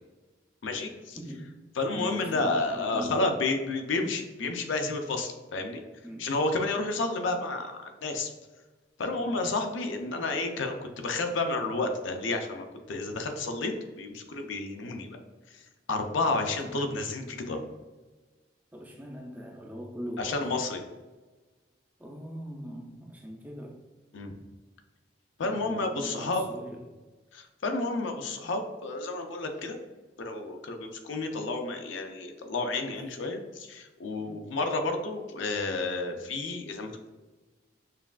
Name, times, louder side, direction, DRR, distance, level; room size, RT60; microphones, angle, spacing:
voice 1, 0.6-1.2 1.8-5.8 6.2-8.3 9.0-13.7 14.0-15.2 15.5-15.6 15.9-17.6 20.2-20.8 24.1-24.3 25.4-26.4 27.3-29.8 30.2-37.1, left 3 dB, 85° left, 5 dB, 0.5 m, -31 dB
voice 2, 1.1-1.6 1.9-3.3 6.0-6.4 9.1-9.5 16.6-16.9 18.7-20.5 22.0-23.8 25.4-27.0 32.9-33.1 34.2-34.5, equal, 10° right, 1 dB, 0.4 m, -41 dB
5.7 x 2.3 x 2.3 m, 1.2 s
head